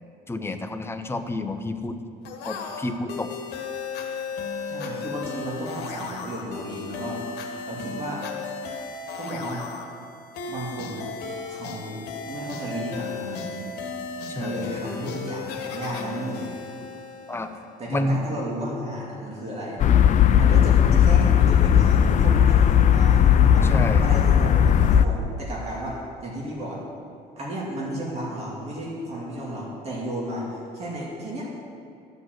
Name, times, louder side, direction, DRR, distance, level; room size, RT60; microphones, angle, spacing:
voice 1, 0.3-2.0 2.5-3.3 14.3-14.7 17.3-17.5 17.9-18.2 23.7-24.1, left 2 dB, 15° left, 7 dB, 0.8 m, -29 dB
sound 1, 2.2-17.7, left 4 dB, 75° left, 1.4 m, -35 dB
voice 2, 4.7-7.3 7.7-8.3 9.2-9.6 10.5-11.1 11.5-13.8 14.3-16.5 17.8-19.8 20.3-23.7 24.0-26.8 27.4-31.5, right 1 dB, 40° right, -4 dB, 2.5 m, -33 dB
sound 2, 19.8-25.1, left 9 dB, 45° left, 0.5 m, -17 dB
13.0 x 5.3 x 7.6 m, 2.4 s
cardioid pair, 110°, 17 cm